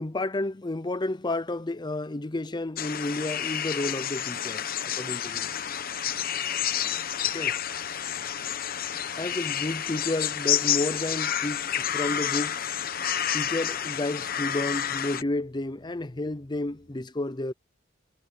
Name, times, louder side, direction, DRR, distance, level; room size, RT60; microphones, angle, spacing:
voice 1, 0.0-4.7 5.0-5.5 7.3-7.5 8.8-12.7 13.3-17.5, left 2 dB, 20° left, 0.6 m, -31 dB
sound 1, 2.8-15.2, left 10 dB, 50° left, 0.9 m, -29 dB
sound 2, 5.2-17.0, equal, 75° right, 4.8 m, -61 dB
head